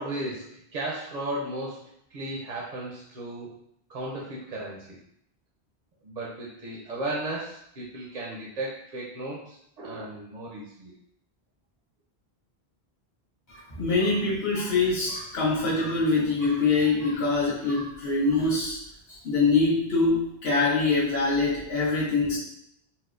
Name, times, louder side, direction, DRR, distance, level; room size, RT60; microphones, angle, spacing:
voice 1, 0.0-3.5 3.9-5.0 6.0-11.0, right 1 dB, 50° right, -4 dB, 0.6 m, -35 dB
voice 2, 13.5-18.8 19.1-22.4, left 3 dB, 80° left, -8 dB, 1.3 m, -24 dB
4.2 x 2.0 x 2.4 m, 0.73 s
omnidirectional pair, 1.1 m